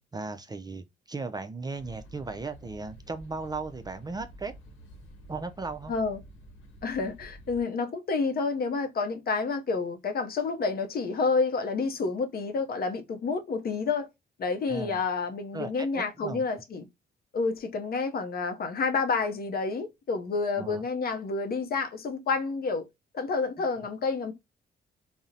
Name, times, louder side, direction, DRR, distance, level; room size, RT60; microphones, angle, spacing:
voice 1, 0.0-4.5 5.3-5.9 14.7-15.0 15.5-16.4 20.6-20.8, right 3 dB, 20° right, 0.3 m, -36 dB
sound 1, 1.7-7.6, equal, 80° left, 0.9 m, -49 dB
voice 2, 5.9-6.2 6.8-14.1 14.4-16.9 17.3-22.9 23.1-24.3, left 4 dB, 50° left, 0.6 m, -29 dB
3.6 x 2.0 x 2.6 m
cardioid pair, 70°, 20 cm